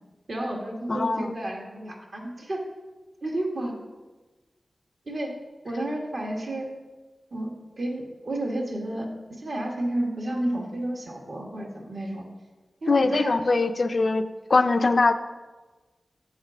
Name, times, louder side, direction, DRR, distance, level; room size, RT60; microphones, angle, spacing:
voice 1, 0.3-2.6 3.2-3.7 5.1-5.3 5.6-6.7 7.3-12.3 12.8-13.4, right 1 dB, 65° right, 0 dB, 1.5 m, -31 dB
voice 2, 0.9-1.3 12.9-15.1, left 3 dB, 60° left, 9 dB, 0.4 m, -22 dB
7.8 x 4.2 x 6.3 m, 1.2 s
cardioid pair, 55°, 0 cm